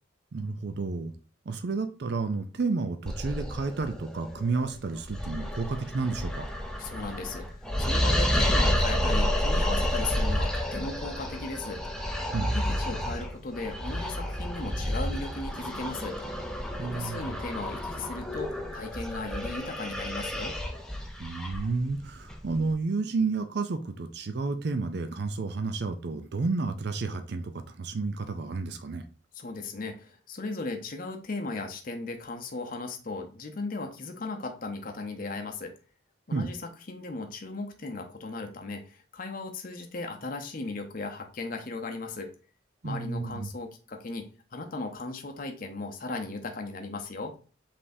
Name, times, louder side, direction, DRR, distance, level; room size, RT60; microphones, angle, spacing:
voice 1, 0.3-1.1 1.5-6.5 12.3-12.5 16.8-17.3 21.2-29.0 36.3-36.5 42.8-43.5, right 3 dB, 55° right, 0.5 m, -31 dB
sound 1, 3.1-22.7, equal, 5° left, 0.5 m, -30 dB
voice 2, 6.8-11.8 12.5-16.2 16.9-20.6 29.3-35.7 36.3-42.3 42.8-47.3, left 3 dB, 45° left, 0.7 m, -37 dB
5.4 x 3.4 x 2.7 m
head